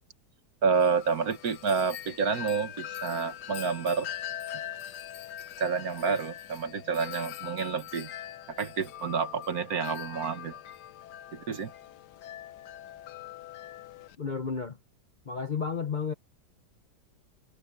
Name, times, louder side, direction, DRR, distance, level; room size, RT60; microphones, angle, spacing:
voice 1, 0.6-4.1 5.6-8.1 8.5-10.6 11.3-11.7, right 5 dB, 55° right, 1.6 m, -29 dB
Wind chime, 0.7-14.2, left 11 dB, 70° left, 1.2 m, -42 dB
voice 2, 14.2-14.8 15.3-16.1, left 5 dB, 40° left, 0.6 m, -32 dB
omnidirectional pair, 1.9 m